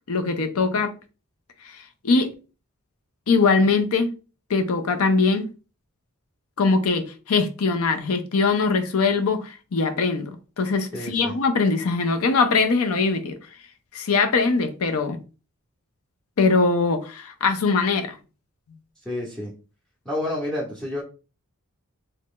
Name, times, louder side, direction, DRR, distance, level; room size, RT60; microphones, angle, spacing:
voice 1, 0.1-0.9 2.0-2.3 3.3-4.1 4.5-5.5 6.6-10.3 10.6-13.4 13.9-15.2 16.4-18.2, left 4 dB, 70° left, 0.6 m, -21 dB
voice 2, 10.9-11.3 19.0-19.5 20.0-21.0, left 1 dB, 5° left, 0.7 m, -29 dB
3.2 x 2.4 x 3.6 m
head